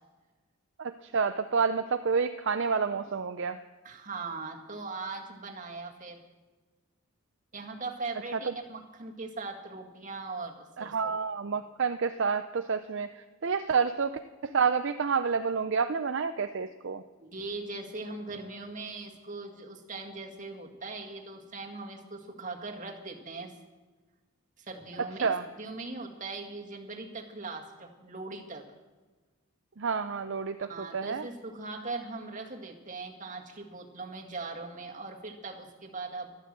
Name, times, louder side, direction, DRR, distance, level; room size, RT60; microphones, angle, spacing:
voice 1, 0.8-3.6 10.8-13.1 13.4-17.0 25.2-25.4 29.8-30.7 30.9-31.2, right 5 dB, 55° right, 8 dB, 0.5 m, -29 dB
voice 2, 3.8-6.2 7.5-11.1 17.2-23.5 24.6-28.7 30.7-36.4, right 3 dB, 35° right, 2 dB, 1.9 m, -40 dB
13.0 x 12.5 x 7.6 m, 1.3 s
head